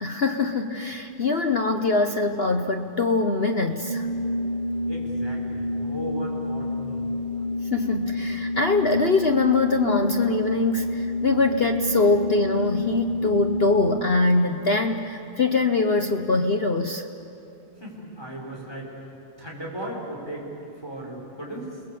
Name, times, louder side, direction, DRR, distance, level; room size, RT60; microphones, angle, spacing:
voice 1, 0.0-4.1 7.7-17.1, left 3 dB, 65° left, 4 dB, 0.6 m, -23 dB
Organ, 3.8-14.1, left 1 dB, 20° right, 2.2 m, -28 dB
voice 2, 4.9-7.0 17.8-21.8, right 1 dB, 10° left, -3 dB, 5.1 m, -37 dB
30.0 x 20.0 x 8.4 m, 2.7 s
omnidirectional pair, 2.4 m